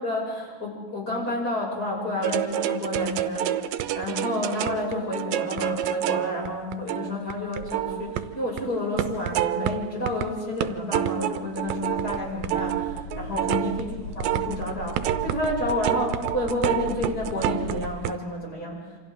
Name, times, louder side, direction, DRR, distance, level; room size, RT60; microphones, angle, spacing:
voice 1, 0.0-3.5 3.9-18.8, left 1 dB, 25° left, -3 dB, 6.8 m, -30 dB
sound 1, 2.2-8.6 9.0-10.3 10.6-18.1, right 12 dB, 90° right, 2.5 m, -28 dB
sound 2, 11.5-18.0, left 1 dB, 55° left, 2.9 m, -39 dB
28.0 x 26.5 x 3.7 m, 1.4 s
omnidirectional pair, 3.9 m